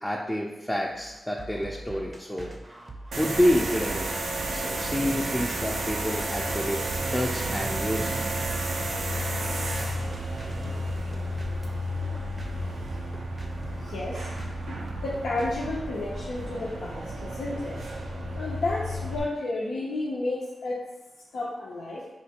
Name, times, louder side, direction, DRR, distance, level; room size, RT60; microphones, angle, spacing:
voice 1, 0.0-2.5 3.2-4.1 4.5-6.8 7.1-8.2, equal, 15° left, -2 dB, 0.4 m, -28 dB
sound 1, 0.9-16.3, right 2 dB, 40° right, 0.6 m, -43 dB
sound 2, 3.1-19.2, right 1 dB, 85° right, 0.4 m, -32 dB
voice 2, 13.8-14.3 14.7-17.8 18.4-20.8 21.3-22.0, left 2 dB, 90° left, -6 dB, 0.5 m, -32 dB
4.3 x 2.3 x 2.8 m, 1.0 s
cardioid pair, 45°, 0 cm